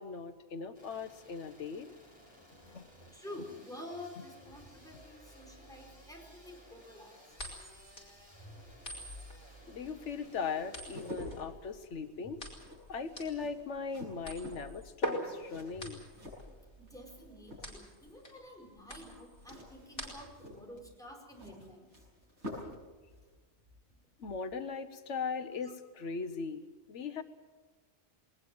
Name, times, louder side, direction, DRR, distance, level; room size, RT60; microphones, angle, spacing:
voice 1, 0.0-1.9 2.7-2.9 9.7-12.4 12.9-16.0 24.2-27.2, left 5 dB, 85° left, 10 dB, 1.3 m, -39 dB
sound 1, 0.7-11.1, left 1 dB, 20° left, 5.6 m, -58 dB
voice 2, 3.1-7.1 8.4-8.6 12.2-12.3 15.8-16.0 16.8-21.9, left 1 dB, 5° left, -1 dB, 4.9 m, -49 dB
sound 2, 7.3-20.5, equal, 55° left, 5.0 m, -44 dB
sound 3, 10.7-17.1 17.4-18.0 19.4-22.9 23.1-23.3, left 1 dB, 75° right, 7.4 m, -48 dB
20.5 x 20.0 x 7.8 m, 1.3 s
omnidirectional pair, 1.2 m